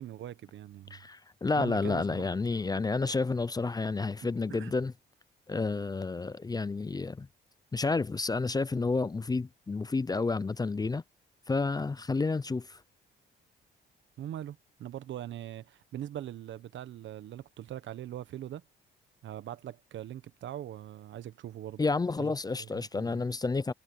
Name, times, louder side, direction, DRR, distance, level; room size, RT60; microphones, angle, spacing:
voice 1, 0.0-1.0 1.6-2.3 2.5-2.7 4.5-4.7 14.2-18.6 19.2-21.8 22.2-22.3 22.6-23.2, right 12 dB, 70° right, 1.1 m, -41 dB
voice 2, 0.9-4.9 5.5-7.3 7.7-11.0 11.5-12.8 21.8-23.7, left 3 dB, 20° left, 0.5 m, -30 dB
cardioid pair, 90°, 20 cm